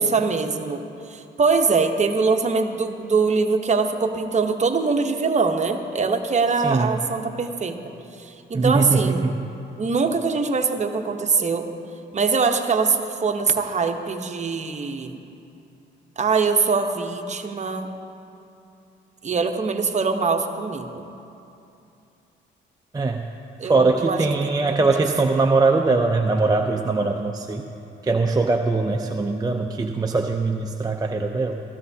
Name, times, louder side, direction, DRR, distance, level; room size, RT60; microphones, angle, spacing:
voice 1, 0.0-7.8 8.2-9.2 9.8-11.7 12.1-15.2 16.2-17.9 19.2-21.0 23.6-24.2 24.7-24.8, right 4 dB, 35° right, 5 dB, 0.9 m, -23 dB
voice 2, 6.6-7.0 8.5-9.5 22.9-23.2 23.6-27.7 28.0-31.6, right 3 dB, 20° right, 2 dB, 0.5 m, -21 dB
16.0 x 14.0 x 2.8 m, 2.7 s
cardioid pair, 90°, 20 cm